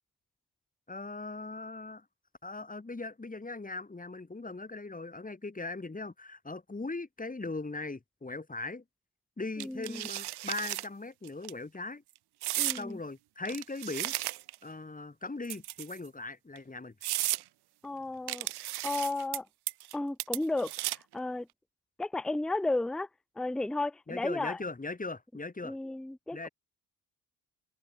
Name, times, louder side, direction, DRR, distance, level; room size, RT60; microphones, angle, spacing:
voice 1, 0.9-2.0 2.4-8.8 9.4-12.0 12.7-14.1 14.6-16.9 24.1-25.7 26.3-26.5, left 3 dB, 20° left, 5.1 m, -39 dB
voice 2, 9.6-10.1 12.6-13.0 17.8-18.5 18.8-19.5 19.9-21.5 22.0-23.1 23.4-24.6 25.6-26.5, left 2 dB, ahead, 0.6 m, -33 dB
sound 1, 9.6-10.9 11.3-11.5 12.4-12.8 13.4-14.6 15.4-16.1 16.6-16.7 17.0-17.4 18.3-19.4 19.7-19.9 20.2-21.1, right 16 dB, 70° right, 0.7 m, -34 dB
open air
cardioid pair, 85°, 40 cm